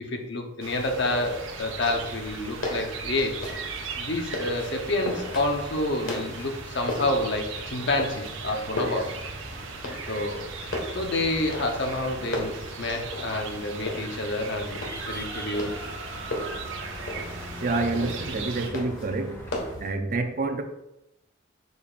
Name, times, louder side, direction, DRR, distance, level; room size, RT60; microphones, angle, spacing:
voice 1, 0.0-3.5 4.0-9.2 10.1-10.5 10.9-15.7, left 2 dB, 60° left, 3 dB, 1.0 m, -28 dB
sound 1, 0.6-18.7, right 4 dB, 85° right, 1.1 m, -38 dB
sound 2, 0.8-19.9, left 1 dB, 80° left, 1.6 m, -37 dB
sound 3, 1.3-19.8, equal, 10° left, 1.3 m, -44 dB
voice 2, 17.6-19.5 19.8-20.6, right 3 dB, 45° right, 6 dB, 0.6 m, -28 dB
6.8 x 6.6 x 2.5 m, 0.88 s
head